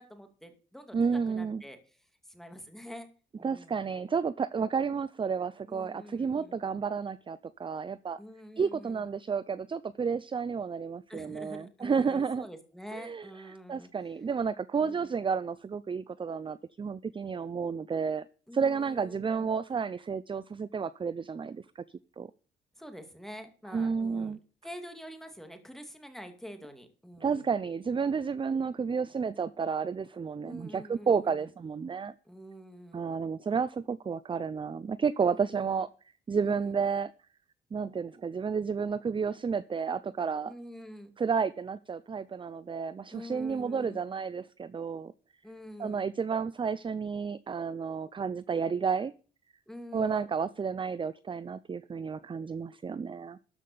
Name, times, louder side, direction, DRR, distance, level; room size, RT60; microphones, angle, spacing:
voice 1, 0.0-1.8 2.3-3.1 3.4-4.0 5.6-6.6 8.2-9.1 11.1-13.9 14.8-15.1 18.5-19.5 22.8-27.5 30.4-31.5 32.2-33.0 35.3-35.8 36.4-36.8 40.5-41.1 43.1-44.0 45.4-46.0 49.7-50.3, equal, ahead, 6 dB, 2.5 m, -46 dB
voice 2, 0.9-1.6 3.4-8.2 8.6-12.5 12.9-13.3 13.7-18.3 18.5-21.8 22.2-22.3 23.7-24.4 27.2-32.1 32.9-35.9 36.3-37.1 37.7-40.5 41.2-45.1 45.8-49.1 49.9-53.4, right 6 dB, 25° right, 16 dB, 0.5 m, -31 dB
13.0 x 5.8 x 6.9 m, 0.39 s
cardioid pair, 90°, 20 cm